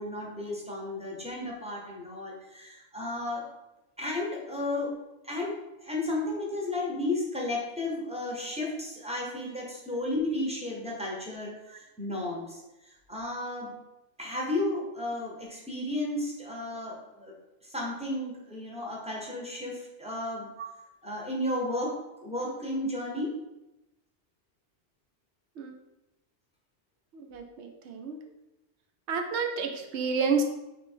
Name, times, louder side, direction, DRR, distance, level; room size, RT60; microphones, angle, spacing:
voice 1, 0.0-3.4 4.0-4.9 5.2-13.7 14.2-17.3 17.6-20.5 21.0-23.3, left 1 dB, 5° right, -3 dB, 0.9 m, -33 dB
voice 2, 27.1-28.2 29.1-30.4, right 4 dB, 70° right, 4 dB, 0.9 m, -30 dB
3.6 x 3.0 x 4.4 m, 0.97 s
omnidirectional pair, 1.2 m